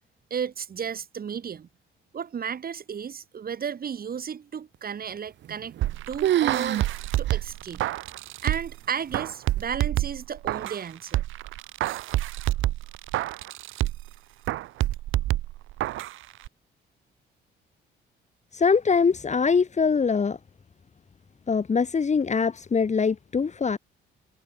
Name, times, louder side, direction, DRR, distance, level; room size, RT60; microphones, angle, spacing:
voice 1, 0.3-1.7 2.1-5.7 6.1-6.8 7.2-7.8 8.4-11.2, right 7 dB, 50° right, 2.8 m, -33 dB
sound 1, 5.4-5.9 6.2-6.9 7.3-7.4 8.0-8.1 8.9-9.3, right 12 dB, 65° right, 0.8 m, -26 dB
sound 2, 5.8-8.8 9.1-10.8 11.1-14.1 14.5-16.1 16.4-16.5, right 15 dB, 90° right, 3.2 m, -28 dB
voice 2, 18.5-20.4 21.5-23.8, left 5 dB, 35° left, 3.0 m, -23 dB
cardioid pair, 90°, 20 cm